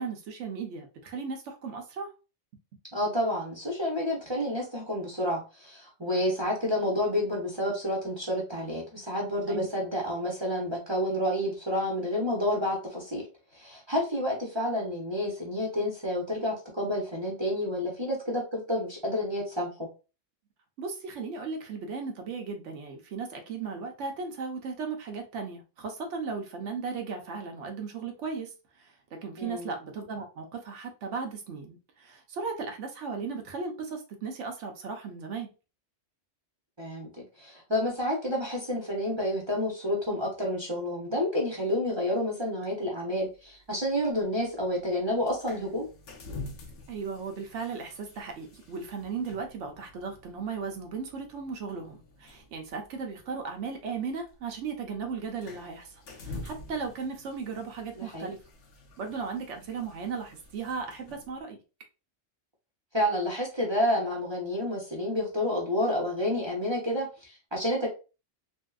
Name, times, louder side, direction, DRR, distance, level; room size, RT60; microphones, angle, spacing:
voice 1, 0.0-2.1 9.5-9.7 20.8-35.5 46.9-58.4 59.0-61.6, right 5 dB, 85° right, 1.0 m, -36 dB
voice 2, 2.9-13.2 13.5-19.7 29.4-29.7 36.8-45.9 58.0-58.3 62.9-67.9, left 1 dB, 30° right, 0.7 m, -29 dB
sound 1, 43.2-61.4, left 2 dB, 90° left, 1.0 m, -48 dB
2.9 x 2.6 x 2.3 m
omnidirectional pair, 1.2 m